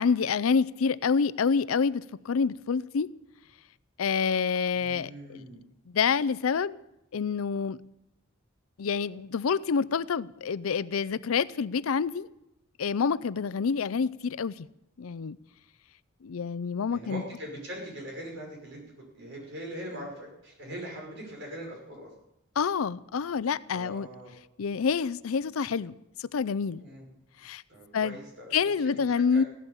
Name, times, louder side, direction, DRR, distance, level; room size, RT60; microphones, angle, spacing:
voice 1, 0.0-3.1 4.0-5.5 5.9-6.8 7.1-7.8 8.8-12.3 12.8-14.7 15.0-15.4 16.2-17.2 22.6-24.1 24.6-25.9 26.2-26.8 27.4-27.6 27.9-28.2 28.5-29.4, left 6 dB, 80° left, 0.5 m, -27 dB
voice 2, 4.7-5.6 16.9-18.8 19.1-22.1 23.7-24.3 26.8-27.0 27.7-29.4, equal, 60° right, 5.6 m, -41 dB
16.0 x 12.0 x 7.0 m
head